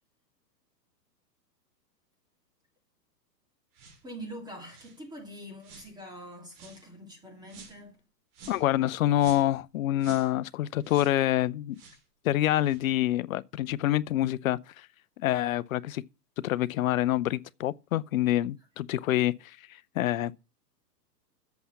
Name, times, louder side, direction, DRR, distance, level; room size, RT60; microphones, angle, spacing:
sound 1, 3.7-4.0 4.7-5.0 5.6-5.9 6.5-6.8 7.5-7.8 8.3-8.7 9.2-9.6 10.0-10.3 10.8-11.2 11.7-12.0 12.6-12.8, right 5 dB, 35° right, 2.7 m, -50 dB
voice 1, 4.0-8.0, equal, 10° right, 2.4 m, -44 dB
voice 2, 8.5-11.8 12.2-14.9 15.2-16.0 16.4-19.6 20.0-20.3, left 14 dB, 55° left, 0.6 m, -26 dB
8.0 x 5.6 x 7.0 m
hypercardioid pair, 145°, 50 cm